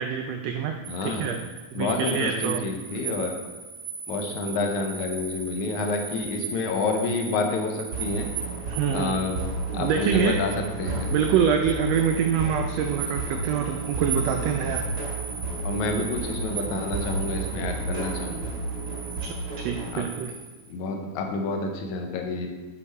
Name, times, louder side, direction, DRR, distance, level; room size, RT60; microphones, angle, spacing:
voice 1, 0.0-1.4 1.7-2.6 8.7-9.2 9.7-10.4 11.1-14.8 19.2-20.3, right 7 dB, 90° right, 5 dB, 1.5 m, -26 dB
sound 1, 0.8-20.7, right 5 dB, 70° right, 1.1 m, -38 dB
voice 2, 0.9-1.3 1.8-3.3 4.1-8.3 8.9-9.4 9.7-11.1 15.6-18.5 19.9-20.1 20.7-22.5, left 3 dB, 75° left, 3 dB, 2.1 m, -28 dB
sound 2, 7.9-19.9, right 3 dB, 55° right, 2.8 m, -32 dB
7.2 x 6.8 x 4.2 m, 1.2 s
omnidirectional pair, 3.6 m